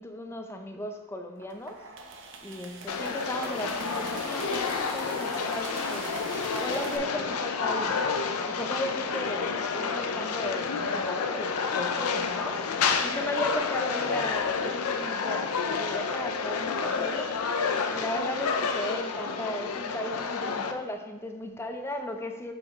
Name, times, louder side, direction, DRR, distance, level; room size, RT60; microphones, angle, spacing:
voice 1, 0.0-1.9 2.4-12.7 13.0-17.5 17.9-22.5, left 1 dB, 10° left, 5 dB, 0.5 m, -36 dB
sound 1, 1.4-7.0, right 3 dB, 55° right, 0.7 m, -41 dB
sound 2, 2.9-20.7, left 5 dB, 80° left, 0.5 m, -29 dB
6.2 x 5.0 x 3.6 m, 1.1 s
head